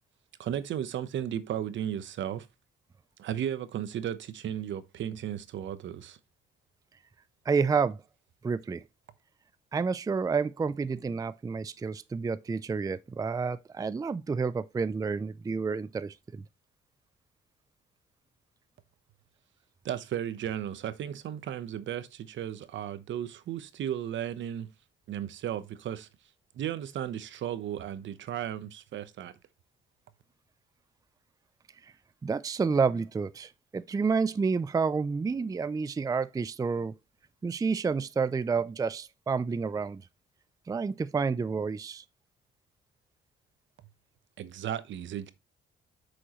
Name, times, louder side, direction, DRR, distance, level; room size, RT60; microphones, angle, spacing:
voice 1, 0.4-2.5 3.2-6.2 19.8-24.7 25.1-26.1 26.5-29.3 44.4-45.3, right 10 dB, 70° right, 0.9 m, -35 dB
voice 2, 7.5-8.0 8.4-8.8 9.7-16.4 31.8-31.9 32.2-36.9 37.4-40.0 40.7-42.0, right 5 dB, 20° right, 0.4 m, -29 dB
7.7 x 6.3 x 3.0 m
cardioid pair, 90°, 20 cm